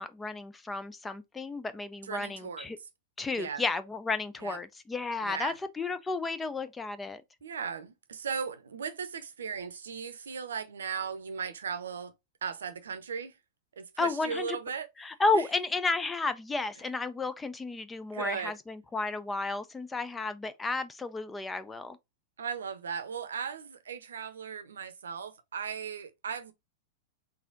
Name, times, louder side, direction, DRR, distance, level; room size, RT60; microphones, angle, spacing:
voice 1, 0.0-2.8 3.2-7.2 14.0-14.6 15.0-22.0, left 3 dB, 15° left, 0.4 m, -32 dB
voice 2, 2.1-2.7 3.3-3.6 4.4-4.6 5.2-5.5 7.4-12.1 12.4-13.3 13.8-14.9 15.3-15.4 18.1-18.6 22.4-26.5, right 6 dB, 75° right, 0.7 m, -37 dB
4.0 x 2.8 x 3.8 m
figure-of-eight pair, 95°, 0 cm